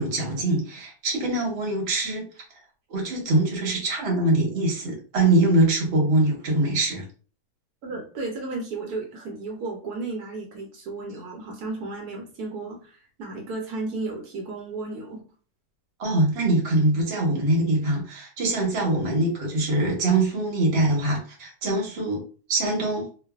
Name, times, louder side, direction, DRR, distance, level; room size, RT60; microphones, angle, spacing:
voice 1, 0.0-2.3 2.9-7.1 16.0-22.2 22.5-23.1, right 2 dB, 50° right, -1 dB, 1.0 m, -23 dB
voice 2, 7.8-15.2, right 3 dB, 75° right, 0 dB, 1.1 m, -34 dB
2.5 x 2.4 x 2.3 m, 0.39 s
omnidirectional pair, 1.7 m